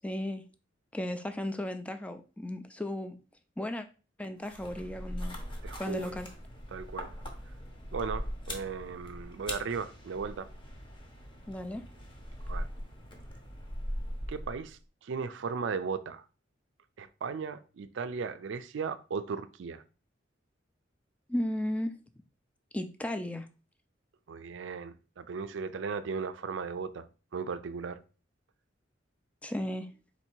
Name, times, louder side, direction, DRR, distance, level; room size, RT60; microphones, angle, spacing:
voice 1, 0.0-0.4 0.9-3.2 3.6-3.9 4.2-5.4 5.8-6.3 11.5-11.8 21.3-21.9 22.7-23.5 29.4-29.9, left 1 dB, 5° left, 0.4 m, -35 dB
sound 1, 4.4-14.8, equal, 25° left, 0.8 m, -41 dB
voice 2, 5.6-6.2 6.7-7.1 7.9-10.5 12.5-12.7 14.3-16.2 17.0-19.8 24.3-27.1 27.3-28.0, right 5 dB, 70° right, 0.4 m, -36 dB
4.1 x 2.7 x 4.4 m
head